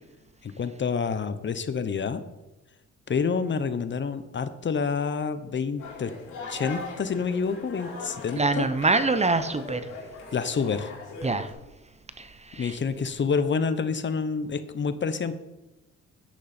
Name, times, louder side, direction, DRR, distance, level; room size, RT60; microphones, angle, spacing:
voice 1, 0.4-2.2 3.1-6.1 6.5-8.7 10.3-10.9 12.5-15.4, left 5 dB, 40° left, 12 dB, 0.9 m, -28 dB
sound 1, 5.8-11.5, left 3 dB, 85° left, 3.8 m, -40 dB
voice 2, 8.4-9.9 11.2-11.5 12.2-12.8, right 3 dB, 20° right, 11 dB, 0.7 m, -25 dB
10.0 x 8.4 x 4.3 m, 1.0 s
cardioid pair, 90°, 30 cm